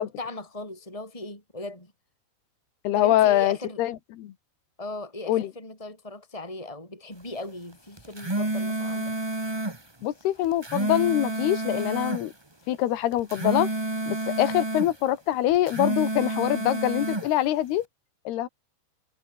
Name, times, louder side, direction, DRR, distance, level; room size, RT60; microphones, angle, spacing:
voice 1, 0.0-1.9 2.9-3.8 4.8-9.2, left 2 dB, 5° left, 6.9 m, -38 dB
voice 2, 2.9-4.3 5.3-5.5 10.0-12.3 12.7-13.7 14.1-17.9 18.3-18.5, left 13 dB, 75° left, 3.6 m, -24 dB
sound 1, 8.0-9.8 10.4-12.2 13.1-14.9 15.5-17.3, right 2 dB, 40° right, 0.3 m, -29 dB
omnidirectional pair, 4.7 m